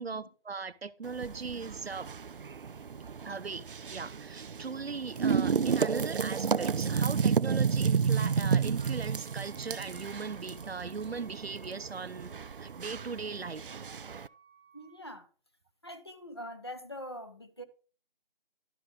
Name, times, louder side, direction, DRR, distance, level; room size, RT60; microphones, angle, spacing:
voice 1, 0.0-2.1 3.2-13.7, right 5 dB, 85° right, 0.9 m, -39 dB
sound 1, 1.0-14.3, right 6 dB, 65° right, 0.4 m, -31 dB
Wind instrument woodwind instrument, 8.9-15.2, right 3 dB, 20° right, 1.1 m, -60 dB
voice 2, 14.7-15.3 15.8-17.6, equal, 25° left, 0.7 m, -43 dB
11.5 x 5.0 x 5.1 m
figure-of-eight pair, 170°, 30 cm